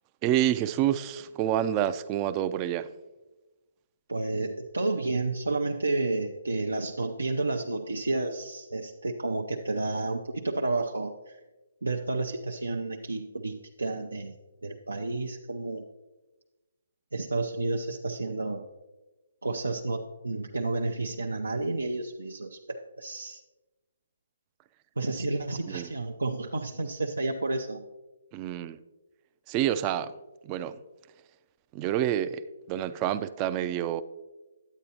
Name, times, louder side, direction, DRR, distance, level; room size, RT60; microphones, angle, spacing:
voice 1, 0.2-2.9 25.7-25.9 28.3-28.8 29.5-30.1 30.4-30.8 31.7-34.0, right 11 dB, 25° right, 13 dB, 0.3 m, -28 dB
voice 2, 4.1-11.4 11.8-14.3 14.6-15.8 17.1-18.6 19.4-23.4 25.0-27.8, right 2 dB, 80° right, 2 dB, 0.5 m, -31 dB
9.1 x 8.5 x 2.8 m, 1.1 s
figure-of-eight pair, 140°, 0 cm